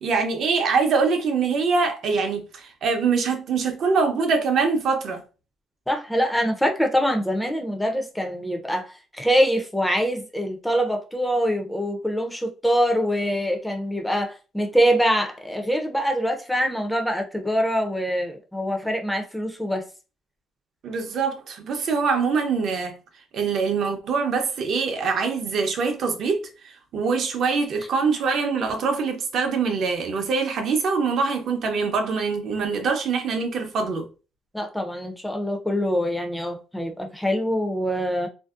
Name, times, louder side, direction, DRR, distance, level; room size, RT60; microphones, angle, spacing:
voice 1, 0.0-5.2 20.8-23.0 23.3-34.1, right 5 dB, 60° right, 0.6 m, -24 dB
voice 2, 5.9-19.8 34.5-38.3, equal, 5° left, 0.5 m, -24 dB
2.5 x 2.0 x 2.4 m
cardioid pair, 95°, 0 cm